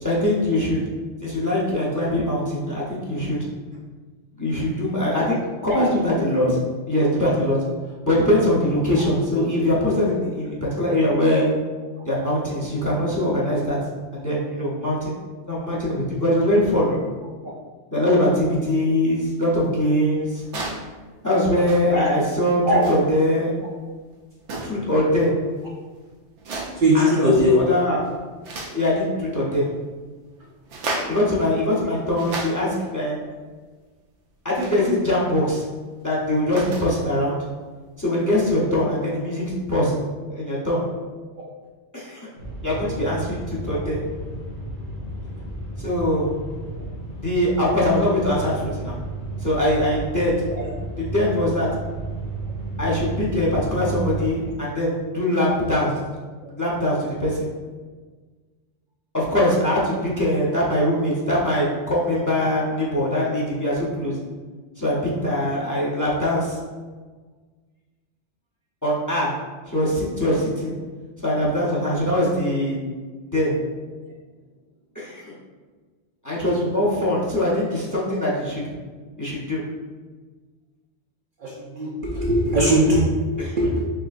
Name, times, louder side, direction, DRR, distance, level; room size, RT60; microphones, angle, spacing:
voice 1, 0.0-0.8 1.2-3.4 4.4-6.5 6.9-7.6 8.0-11.5 12.0-13.8 14.1-15.2 15.4-17.0 17.9-20.4 21.2-22.6 22.9-23.5 24.6-25.3 26.9-28.0 28.7-29.7 31.1-33.1 34.4-35.6 36.0-37.4 38.0-39.9 40.3-40.8 41.9-42.3 42.6-44.0 45.8-46.3 47.2-49.0 49.4-50.3 51.0-51.7 52.8-56.0 56.4-57.4 59.1-64.2 64.8-66.6 68.8-69.3 69.7-70.7 71.2-72.8 73.3-73.5 74.9-75.2 76.2-78.7 79.2-79.6 83.4-83.6, left 1 dB, 15° left, -6 dB, 0.8 m, -22 dB
sound 1, 20.4-20.9 21.6-22.0 22.7-23.2 24.4-24.9 26.4-26.9 27.4-27.7 28.0-28.8 30.6-31.3 31.9-32.9 34.6-34.8 36.2-37.0 38.4-38.5, right 2 dB, 80° right, 1.0 m, -33 dB
voice 2, 26.7-27.6 41.3-41.4 43.7-43.8 50.5-50.7 81.4-83.9, equal, 55° right, -4 dB, 0.6 m, -20 dB
sound 2, 42.4-54.5, right 3 dB, 75° left, 1.3 m, -32 dB
4.8 x 3.6 x 2.5 m, 1.4 s
omnidirectional pair, 1.2 m